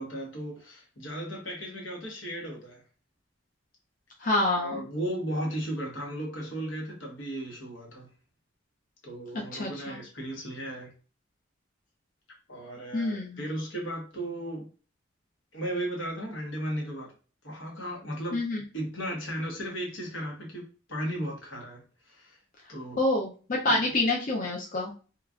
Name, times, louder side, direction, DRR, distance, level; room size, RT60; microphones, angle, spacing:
voice 1, 0.0-2.8 4.6-8.1 9.0-10.9 12.5-14.7 15.5-17.1 17.4-18.4 18.7-20.6 20.9-22.4 22.7-23.0 23.7-23.8, right 1 dB, 85° left, 1.2 m, -35 dB
voice 2, 4.2-4.8 9.5-9.9 12.9-13.4 18.3-18.6 23.0-24.9, left 2 dB, 45° left, 0.5 m, -27 dB
3.1 x 2.4 x 2.4 m
head